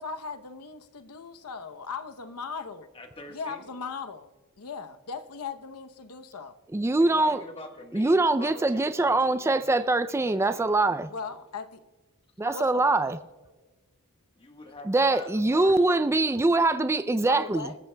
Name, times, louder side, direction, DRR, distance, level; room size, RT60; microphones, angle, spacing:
voice 1, 0.0-2.9 3.3-4.3 4.6-6.5 11.1-11.8 12.5-13.1 17.3-17.8, left 5 dB, 90° left, 0.8 m, -38 dB
voice 2, 2.9-3.6 7.0-10.7 12.4-12.6 14.4-16.0, left 2 dB, 25° left, 1.3 m, -45 dB
voice 3, 6.7-7.4 7.9-11.1 12.4-13.2 14.9-17.7, right 2 dB, 10° right, 0.3 m, -23 dB
25.0 x 14.0 x 2.2 m
head